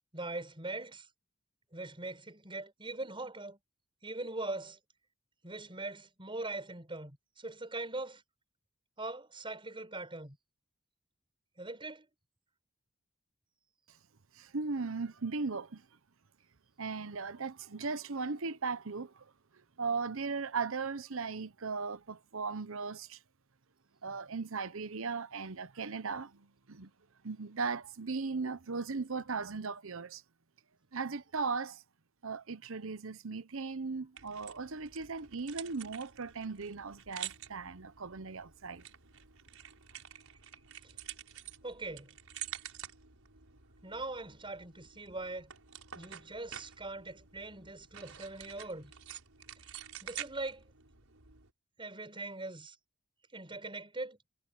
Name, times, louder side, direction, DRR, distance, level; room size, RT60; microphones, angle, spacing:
voice 1, 0.1-1.1 1.7-3.6 4.0-4.8 5.4-8.2 9.0-10.4 11.6-12.1 41.6-42.1 43.8-45.5 46.0-48.9 50.0-50.7 51.8-52.8 53.3-54.2, right 2 dB, 25° right, 5.8 m, -41 dB
voice 2, 14.3-15.9 16.8-19.3 19.8-23.2 24.0-26.9 27.2-30.2 30.9-31.8 32.2-38.8, right 4 dB, 70° right, 1.0 m, -37 dB
sound 1, 34.2-51.5, right 10 dB, 85° right, 5.3 m, -49 dB
head